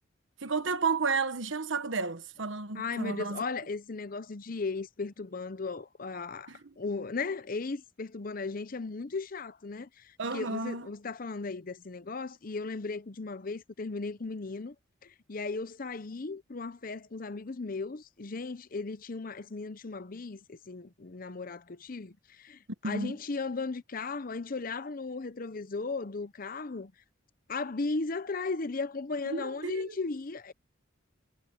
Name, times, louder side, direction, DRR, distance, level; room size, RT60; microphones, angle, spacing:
voice 1, 0.4-3.4 6.5-6.6 10.2-10.9 22.8-23.2 29.2-29.9, right 4 dB, 75° right, 1.2 m, -32 dB
voice 2, 2.7-14.7 15.0-26.9 27.5-30.5, left 3 dB, 45° left, 0.7 m, -36 dB
head